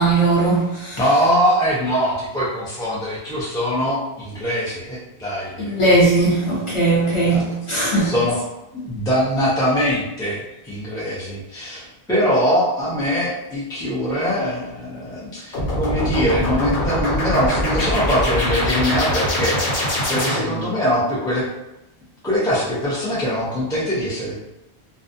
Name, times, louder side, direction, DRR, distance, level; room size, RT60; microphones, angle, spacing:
voice 1, 0.0-1.0 5.6-8.1, right 2 dB, 30° left, -7 dB, 0.7 m, -18 dB
voice 2, 1.0-5.7 7.3-7.4 8.0-8.4 8.7-21.5 22.2-24.3, equal, 5° left, -8 dB, 0.4 m, -22 dB
sound 1, 15.5-20.7, left 1 dB, 65° left, 1.0 m, -23 dB
2.4 x 2.2 x 2.6 m, 0.94 s
omnidirectional pair, 1.1 m